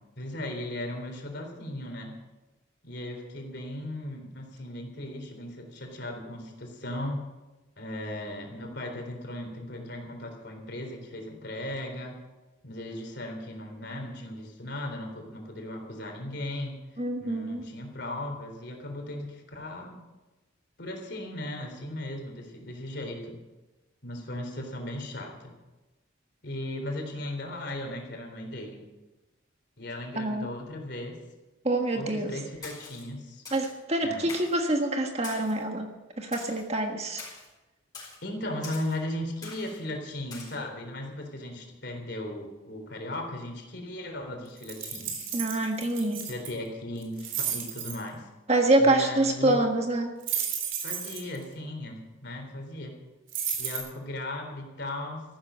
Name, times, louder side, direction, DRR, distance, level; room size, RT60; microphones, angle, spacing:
voice 1, 0.2-2.2 2.8-7.3 7.8-12.2 12.6-20.0 20.8-23.4 24.0-25.5 26.4-28.8 29.8-31.2 32.0-33.4 34.0-34.3 38.2-45.3 46.3-48.3 48.8-49.6 50.8-53.0 53.6-55.2, left 1 dB, 55° left, 3 dB, 3.8 m, -37 dB
voice 2, 17.0-17.6 30.1-30.5 31.6-32.3 33.5-35.9 36.2-37.2 45.3-46.2 48.5-50.1, right 2 dB, 30° right, 3 dB, 1.5 m, -26 dB
Splash splatter, 32.6-33.0 33.5-33.8 34.3-34.6 35.2-35.6 36.3-36.6 37.2-37.5 37.9-38.2 38.6-39.0 39.4-39.8 40.3-40.6, left 4 dB, 20° left, 5.4 m, -43 dB
sound 1, 44.6-46.5 47.0-48.0 50.2-51.4 53.3-53.8, right 8 dB, 70° right, 3.6 m, -32 dB
14.5 x 12.5 x 6.3 m, 1.1 s
head